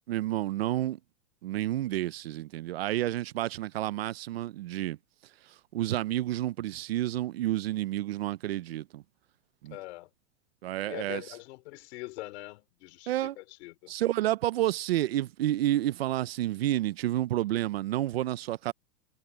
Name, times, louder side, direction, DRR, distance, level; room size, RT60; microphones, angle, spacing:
voice 1, 0.1-1.0 1.4-5.0 5.4-9.0 9.6-9.8 10.6-11.2 13.1-13.4 13.9-18.7, right 14 dB, 40° right, 0.4 m, -30 dB
voice 2, 9.7-10.1 10.9-13.9, left 21 dB, 45° left, 2.9 m, -43 dB
supercardioid pair, 160°, 47 cm